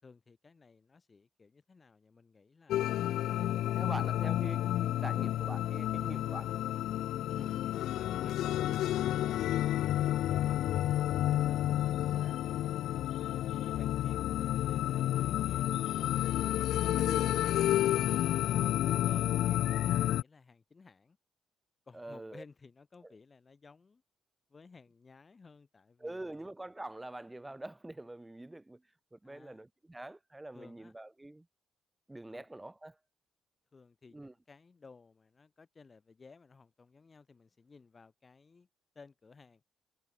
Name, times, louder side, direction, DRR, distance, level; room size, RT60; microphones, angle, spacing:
voice 1, 0.0-2.9 7.4-7.7 8.0-9.6 9.8-12.5 13.0-16.2 16.8-21.2 21.9-24.0 24.5-26.4 27.4-27.5 29.2-29.6 30.5-30.9 32.3-32.5 33.7-38.7 38.9-39.6, left 4 dB, 30° left, 5.0 m, -58 dB
sound 1, 2.7-20.2, left 13 dB, 80° left, 0.3 m, -30 dB
voice 2, 3.7-6.6 7.3-7.5 12.2-12.4 16.9-17.3 21.9-22.4 23.0-23.1 26.0-28.8 29.1-31.5 32.1-33.0 34.1-34.3, right 1 dB, 10° right, 1.9 m, -45 dB
cardioid pair, 90°, 0 cm